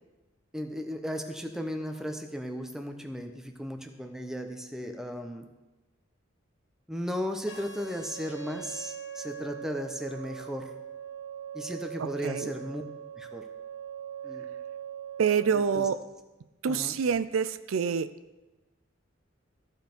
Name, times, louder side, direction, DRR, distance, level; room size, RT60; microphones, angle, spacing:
voice 1, 0.5-5.4 6.9-10.7 11.5-12.8 13.2-13.5 14.2-14.5 15.5-15.9 16.7-17.0, equal, 5° right, 4 dB, 0.7 m, -36 dB
sound 1, 7.5-15.5, right 8 dB, 60° left, 1.7 m, -41 dB
voice 2, 12.0-12.5 15.2-16.0 16.6-18.1, right 6 dB, 85° right, 13 dB, 0.4 m, -27 dB
14.0 x 5.2 x 4.5 m, 1.1 s
head